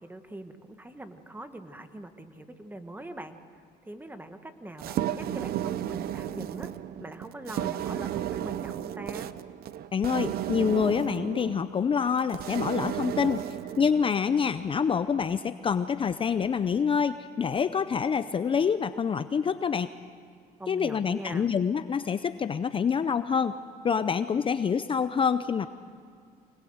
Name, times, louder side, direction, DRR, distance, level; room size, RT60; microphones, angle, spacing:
voice 1, 0.0-3.4 3.8-6.7 7.0-9.3 20.6-21.5, right 1 dB, 10° right, 8 dB, 1.6 m, -42 dB
sound 1, 4.8-14.3, right 11 dB, 65° right, 0.8 m, -34 dB
voice 2, 9.9-13.5 13.8-19.9 20.7-23.6 23.8-25.7, left 6 dB, 30° left, 12 dB, 0.6 m, -26 dB
25.0 x 20.0 x 8.0 m, 2.2 s
cardioid pair, 110°, 17 cm